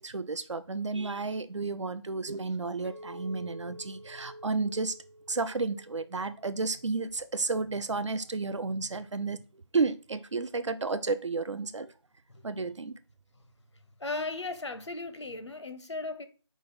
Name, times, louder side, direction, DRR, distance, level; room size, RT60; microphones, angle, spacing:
voice 1, 0.0-4.9 5.3-11.9 12.4-13.0, right 4 dB, 90° right, 0.4 m, -32 dB
Chink clink, 2.8-7.2 7.7-8.0, equal, 20° right, 0.3 m, -49 dB
voice 2, 14.0-16.3, left 3 dB, 75° left, 0.6 m, -36 dB
5.0 x 2.4 x 3.9 m
figure-of-eight pair, 165°, 15 cm